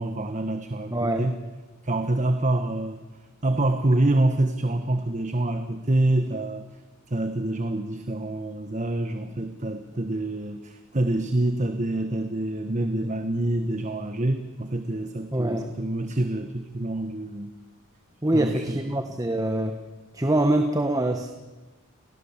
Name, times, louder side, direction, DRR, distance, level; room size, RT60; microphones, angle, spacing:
voice 1, 0.0-1.4 1.8-3.0 3.4-6.7 7.1-17.5 18.3-19.0, right 1 dB, 35° right, 8 dB, 1.3 m, -26 dB
voice 2, 0.9-1.3 15.3-15.7 18.2-19.8 20.1-21.3, right 1 dB, 15° right, 6 dB, 1.4 m, -24 dB
29.5 x 20.5 x 7.4 m, 1.2 s
head